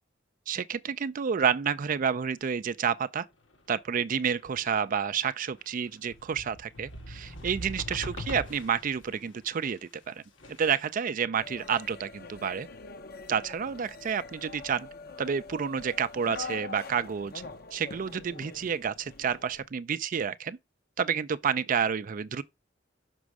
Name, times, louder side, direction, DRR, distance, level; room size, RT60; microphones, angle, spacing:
voice 1, 0.5-3.3 3.7-9.8 10.1-10.2 10.6-12.7 13.3-14.9 15.2-17.3 17.7-20.6 21.0-22.4, right 7 dB, 45° right, 0.4 m, -29 dB
sound 1, 3.5-3.8 4.2-5.1 5.5-11.0, equal, 85° left, 2.1 m, -42 dB
sound 2, 11.4-19.6, left 4 dB, 55° left, 0.9 m, -44 dB
6.1 x 5.2 x 4.7 m
head